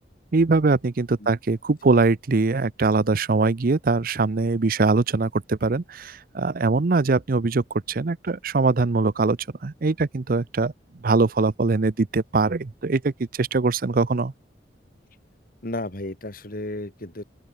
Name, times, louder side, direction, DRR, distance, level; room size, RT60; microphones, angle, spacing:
voice 1, 0.3-10.7 11.0-14.3, right 3 dB, 55° right, 0.6 m, -22 dB
voice 2, 15.6-17.2, left 1 dB, 55° left, 2.3 m, -33 dB
open air
head